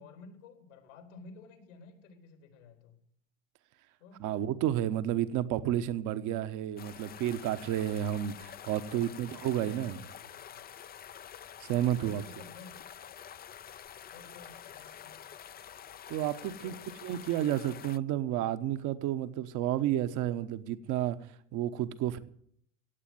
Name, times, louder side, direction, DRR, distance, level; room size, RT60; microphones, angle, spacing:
voice 1, 0.0-3.0 4.0-4.3 8.6-10.7 11.7-13.2 14.1-15.2 16.4-16.9, left 4 dB, 85° left, 5 dB, 4.4 m, -53 dB
voice 2, 4.2-10.0 11.6-12.2 16.1-16.7 17.0-21.2 21.5-22.2, right 12 dB, 55° right, 10 dB, 1.2 m, -31 dB
sound 1, 6.8-18.0, left 9 dB, 25° left, 0.6 m, -48 dB
16.5 x 8.3 x 9.5 m, 0.64 s
hypercardioid pair, 90°, 36 cm